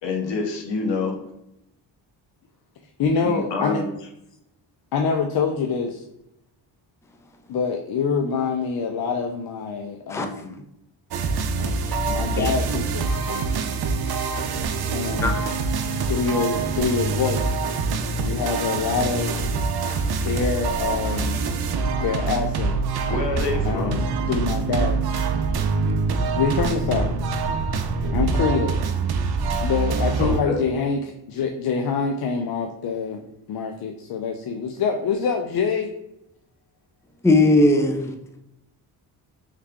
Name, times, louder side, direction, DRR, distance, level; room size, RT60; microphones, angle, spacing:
voice 1, 0.0-1.2 3.2-3.9 23.1-24.0 30.2-30.6, left 3 dB, 80° left, 1.0 m, -27 dB
voice 2, 3.0-3.8 4.9-6.0 7.5-10.6 11.6-13.1 14.9-15.3 15.8-17.6 18.2-19.4 20.2-21.4 22.0-22.8 23.7-25.0 26.4-27.1 28.1-28.8 29.6-33.2 33.5-35.9, left 5 dB, 55° left, 0.5 m, -25 dB
sound 1, 11.1-30.4, right 4 dB, 60° right, 0.6 m, -25 dB
voice 3, 15.2-15.6 19.9-20.0 37.2-38.1, left 2 dB, 5° left, 0.4 m, -19 dB
3.4 x 3.3 x 3.5 m
cardioid pair, 85°, 43 cm